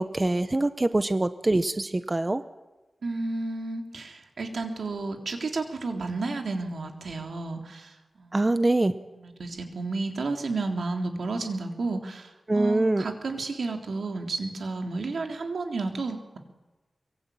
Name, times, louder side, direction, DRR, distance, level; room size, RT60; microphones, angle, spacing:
voice 1, 0.0-2.4 8.3-8.9 12.5-13.0, right 2 dB, 25° right, 11 dB, 0.9 m, -24 dB
voice 2, 3.0-8.5 9.2-16.4, right 3 dB, 85° right, 4 dB, 3.5 m, -32 dB
23.5 x 22.5 x 8.8 m, 1.1 s
wide cardioid pair, 110°, 0 cm